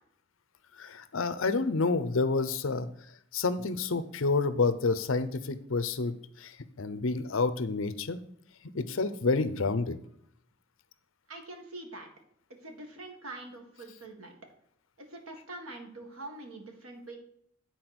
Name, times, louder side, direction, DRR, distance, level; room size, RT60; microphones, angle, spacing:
voice 1, 0.8-2.9 3.3-8.2 8.7-10.0, left 3 dB, 70° left, 13 dB, 0.7 m, -29 dB
voice 2, 11.3-12.1 12.6-14.3 15.0-17.2, right 2 dB, 80° right, 3 dB, 1.9 m, -44 dB
9.7 x 4.4 x 6.0 m, 0.70 s
head